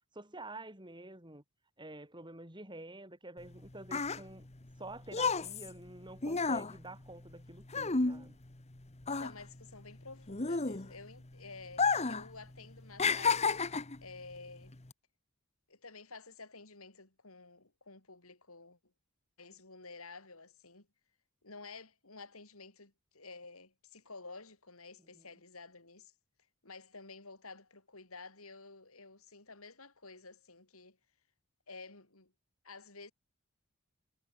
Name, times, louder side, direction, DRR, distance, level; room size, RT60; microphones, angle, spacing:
voice 1, 0.1-1.4 1.8-4.5 4.8-8.4 25.2-25.3, right 2 dB, 20° right, 7.2 m, -49 dB
sound 1, 3.4-8.7 9.0-11.2 11.7-12.3 12.5-14.0 14.7-14.9, left 4 dB, 30° left, 1.2 m, -32 dB
voice 2, 9.1-14.8 15.7-18.9 19.4-20.9 21.4-26.1 26.6-31.0 31.7-32.3 32.6-33.1, left 3 dB, 75° left, 5.5 m, -51 dB
head